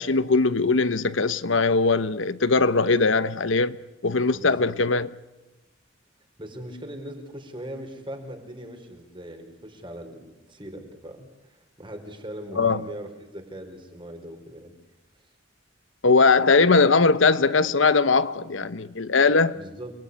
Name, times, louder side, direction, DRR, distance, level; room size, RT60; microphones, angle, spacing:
voice 1, 0.0-5.1 12.6-12.8 16.0-19.6, left 4 dB, 75° left, 1.0 m, -20 dB
voice 2, 4.3-4.7 6.4-14.7 19.5-19.9, right 1 dB, 25° right, 4.4 m, -40 dB
30.0 x 20.0 x 9.7 m
head